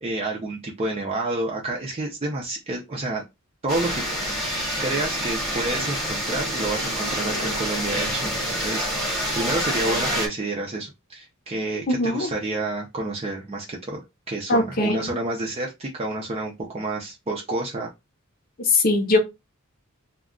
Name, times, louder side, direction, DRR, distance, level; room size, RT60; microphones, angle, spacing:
voice 1, 0.0-3.2 3.6-4.0 4.8-14.0 14.3-17.9, right 2 dB, 30° right, 0.5 m, -29 dB
sound 1, 3.7-10.3, equal, ahead, 1.0 m, -27 dB
voice 2, 11.9-12.3 14.5-15.2 18.6-19.2, left 2 dB, 45° left, 0.7 m, -21 dB
2.3 x 2.1 x 3.6 m
head